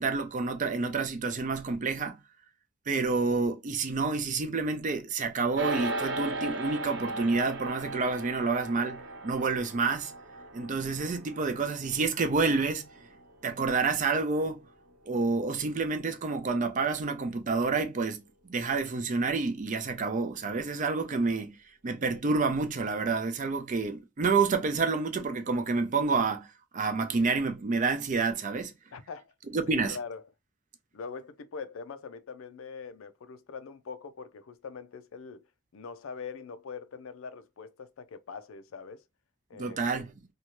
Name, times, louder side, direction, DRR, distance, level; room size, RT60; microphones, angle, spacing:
voice 1, 0.0-2.2 2.9-10.1 10.5-12.8 13.4-14.6 15.1-21.6 21.8-26.5 26.7-28.7 29.5-30.0 39.5-40.1, right 4 dB, 40° right, 0.5 m, -28 dB
sound 1, 5.6-15.1, right 2 dB, 65° right, 0.8 m, -38 dB
voice 2, 28.9-29.3 29.7-30.2 30.9-35.4 35.7-39.0 39.5-39.8, left 5 dB, 85° left, 0.4 m, -42 dB
2.7 x 2.3 x 2.9 m
head